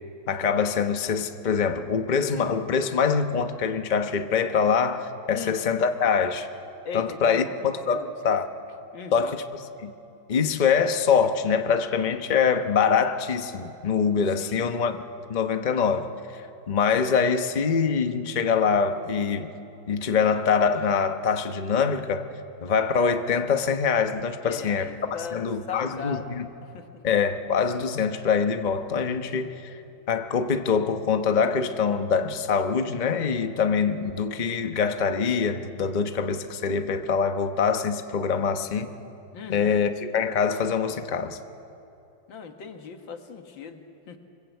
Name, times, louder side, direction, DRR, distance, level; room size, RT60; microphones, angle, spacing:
voice 1, 0.3-6.5 6.9-8.5 9.1-9.9 10.3-15.0 15.3-16.1 16.7-19.5 19.9-22.3 22.6-26.5 27.0-29.7 30.1-38.9 39.5-41.4, left 6 dB, 35° left, 0.9 m, -24 dB
voice 2, 6.8-8.1 8.9-9.3 14.4-14.7 24.4-26.3 26.7-26.9 39.3-39.8 42.3-44.2, left 6 dB, 90° left, 2.2 m, -38 dB
25.0 x 21.5 x 8.2 m
omnidirectional pair, 2.0 m